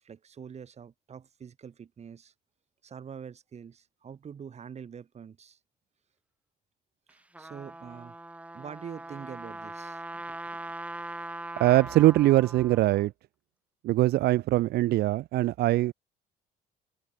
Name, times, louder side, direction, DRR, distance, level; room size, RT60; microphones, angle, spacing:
voice 1, 0.0-2.3 2.8-5.6 7.1-8.2 8.5-10.6 11.1-11.3, right 7 dB, 40° right, 4.8 m, -45 dB
Trumpet, 7.1-13.0, right 1 dB, 10° right, 1.3 m, -41 dB
voice 2, 11.6-13.1 13.8-15.9, right 16 dB, 75° right, 0.9 m, -22 dB
cardioid pair, 110°, 17 cm